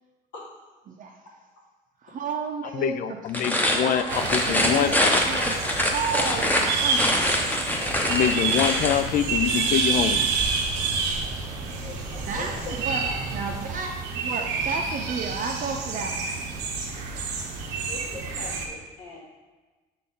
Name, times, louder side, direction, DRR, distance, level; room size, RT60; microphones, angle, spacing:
voice 1, 0.9-1.2 2.0-4.1 4.5-7.4 12.3-13.1 13.3-16.3, right 4 dB, 45° right, 2 dB, 0.6 m, -32 dB
voice 2, 2.7-5.2 7.9-10.3, left 9 dB, 50° left, 12 dB, 0.4 m, -25 dB
sound 1, 3.3-9.1, left 1 dB, 10° left, 0.8 m, -24 dB
sound 2, 4.1-18.7, right 5 dB, 85° right, 0.9 m, -29 dB
sound 3, 8.0-13.7, right 1 dB, 20° right, 1.0 m, -38 dB
voice 3, 11.8-12.7 13.0-13.2 17.9-19.2, left 3 dB, 75° left, -3 dB, 1.9 m, -41 dB
6.6 x 4.1 x 3.7 m, 1.3 s
supercardioid pair, 95°, 18 cm